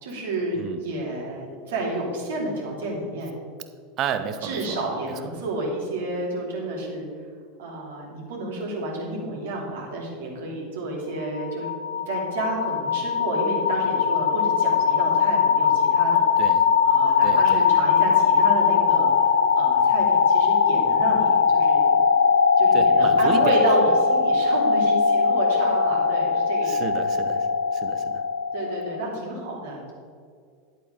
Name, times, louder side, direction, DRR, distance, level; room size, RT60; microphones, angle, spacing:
voice 1, 0.0-3.4 4.4-7.1 7.6-16.2 16.8-22.0 22.6-26.8 28.5-29.9, right 2 dB, 65° right, -3 dB, 2.9 m, -30 dB
voice 2, 4.0-4.6 16.4-16.6 17.2-17.6 22.7-23.5 26.7-27.5 27.7-28.2, right 8 dB, 40° right, 9 dB, 1.0 m, -31 dB
sound 1, 11.2-29.1, left 6 dB, 75° left, 0.6 m, -20 dB
11.0 x 8.0 x 5.1 m, 2.2 s
figure-of-eight pair, 80°, 0 cm